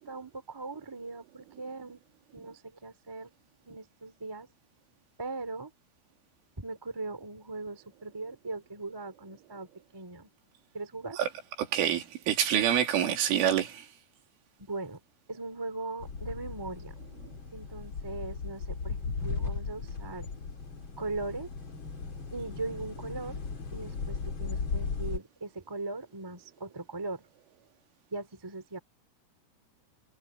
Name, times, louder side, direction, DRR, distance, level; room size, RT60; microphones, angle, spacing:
voice 1, 0.0-2.0 2.3-3.3 3.6-4.5 5.2-5.7 6.6-10.3 10.7-11.2 14.6-15.0 15.3-17.1 17.5-20.3 21.0-21.5 22.3-23.4 23.7-27.2 28.1-28.8, right 3 dB, 20° right, 0.5 m, -39 dB
voice 2, 11.6-13.9, right 10 dB, 70° right, 5.1 m, -26 dB
sound 1, 16.0-25.2, left 5 dB, 75° left, 1.1 m, -37 dB
omnidirectional pair, 5.9 m